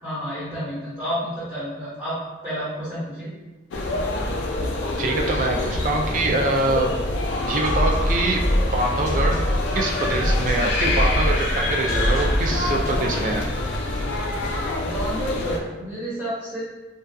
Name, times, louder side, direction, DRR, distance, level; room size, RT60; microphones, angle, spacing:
voice 1, 0.0-2.2 2.4-3.3 14.8-16.6, equal, 10° right, -14 dB, 0.9 m, -30 dB
sound 1, 3.7-15.6, left 2 dB, 80° left, 0.3 m, -26 dB
voice 2, 5.0-6.9 7.5-8.4 8.7-9.4 9.7-13.5, right 2 dB, 45° right, 1 dB, 0.3 m, -24 dB
sound 2, 7.6-13.3, equal, 15° left, 0.7 m, -25 dB
2.6 x 2.3 x 2.2 m, 1.1 s
head